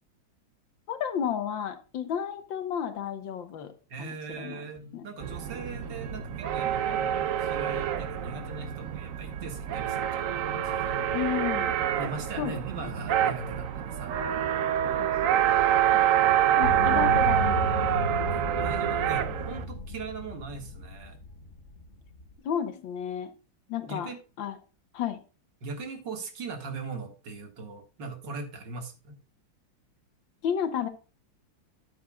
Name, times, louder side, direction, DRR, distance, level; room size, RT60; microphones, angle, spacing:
voice 1, 0.9-3.7 4.0-4.6 4.9-5.1 11.1-11.7 12.4-12.9 15.0-15.5 16.6-17.6 22.4-23.3 23.7-24.1 24.4-24.6 24.9-25.2 30.4-30.9, left 8 dB, 75° left, 9 dB, 1.8 m, -32 dB
voice 2, 3.9-10.9 12.0-14.4 16.5-17.0 18.1-21.2 23.9-24.2 25.6-29.2, right 4 dB, 65° right, 5 dB, 2.4 m, -40 dB
sound 1, 4.3-13.9, left 5 dB, 15° left, 4.2 m, -49 dB
sound 2, 5.2-19.6, right 10 dB, 85° right, 0.7 m, -27 dB
sound 3, 16.6-22.3, left 2 dB, 40° left, 1.6 m, -33 dB
12.5 x 7.7 x 2.3 m, 0.34 s
omnidirectional pair, 2.2 m